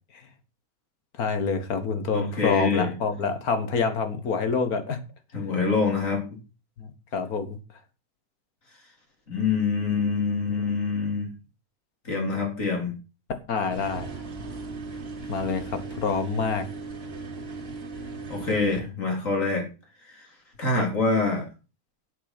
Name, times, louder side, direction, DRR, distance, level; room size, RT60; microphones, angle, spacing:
voice 1, 1.2-5.0 6.8-7.6 13.5-14.1 15.3-16.7, left 5 dB, 80° left, 9 dB, 2.1 m, -27 dB
voice 2, 2.1-2.9 5.3-6.2 9.3-11.3 12.1-12.9 18.3-19.6 20.1-20.3 20.6-21.5, left 4 dB, 60° left, 1 dB, 4.1 m, -25 dB
sound 1, 13.7-18.8, right 3 dB, 45° right, 1.6 m, -37 dB
8.3 x 7.9 x 6.1 m, 0.32 s
omnidirectional pair, 1.5 m